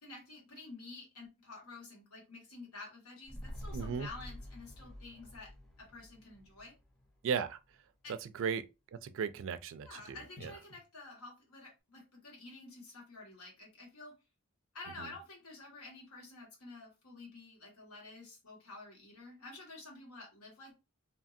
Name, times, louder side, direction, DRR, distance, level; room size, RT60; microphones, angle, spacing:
voice 1, 0.0-5.5 5.8-6.7 8.0-8.1 9.8-14.1 14.7-20.8, left 3 dB, 90° left, 1.4 m, -50 dB
sound 1, 3.2-7.8 8.1-8.2, equal, ahead, 0.5 m, -49 dB
voice 2, 3.7-4.1 7.2-7.6 8.2-8.6 9.0-10.5 15.0-15.1, right 6 dB, 65° right, 0.3 m, -36 dB
2.8 x 2.6 x 2.4 m
head